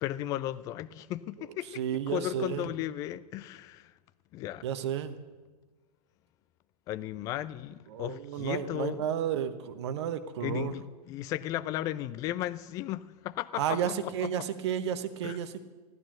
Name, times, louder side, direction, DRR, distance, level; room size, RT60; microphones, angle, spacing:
voice 1, 0.0-3.9 4.3-4.6 6.9-9.1 10.4-14.5 15.2-15.4, left 13 dB, 15° left, 0.3 m, -35 dB
voice 2, 1.8-2.7 4.6-5.1 7.9-10.7 13.6-15.6, right 9 dB, 45° right, 1.0 m, -32 dB
14.5 x 10.0 x 6.4 m
figure-of-eight pair, 105°, 20 cm